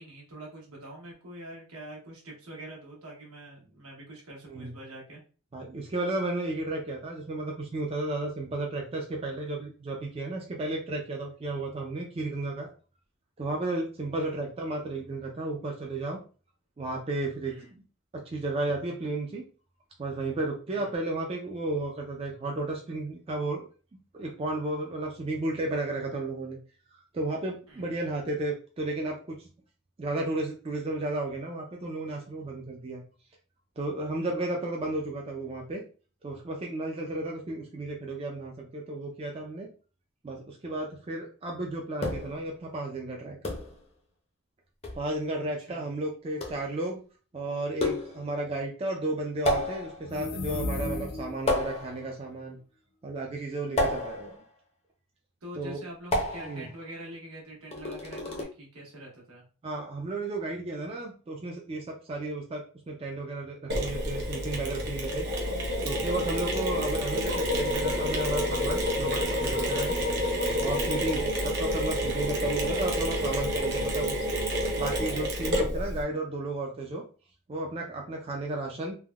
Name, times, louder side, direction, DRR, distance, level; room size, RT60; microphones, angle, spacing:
voice 1, 0.0-5.2 14.1-14.4 17.4-17.7 20.7-20.9 27.7-27.9 45.6-45.9 55.4-59.4 66.5-67.0, right 1 dB, 80° right, -2 dB, 1.1 m, -45 dB
voice 2, 5.5-12.7 13.4-16.2 16.8-17.8 18.3-19.4 20.0-23.7 24.1-26.6 27.1-29.5 30.0-33.0 33.8-35.8 36.2-39.7 40.2-43.4 44.9-47.0 47.3-52.6 53.0-54.4 55.6-55.8 56.4-56.7 59.6-65.2 65.8-70.0 70.6-74.2 74.8-77.0 77.5-78.9, right 2 dB, 25° right, 0 dB, 0.3 m, -33 dB
sound 1, 42.0-42.4 43.4-43.8 44.8-45.1 46.4-46.7 47.8-48.3 49.5-50.1 51.5-52.1 53.8-54.4 56.1-56.7 57.7-58.4, left 1 dB, 30° left, 0.5 m, -30 dB
sound 2, 50.0-51.5, left 2 dB, 80° left, 0.4 m, -34 dB
Mechanisms, 63.7-76.0, equal, 50° right, 0.7 m, -29 dB
3.3 x 2.1 x 2.2 m, 0.37 s
head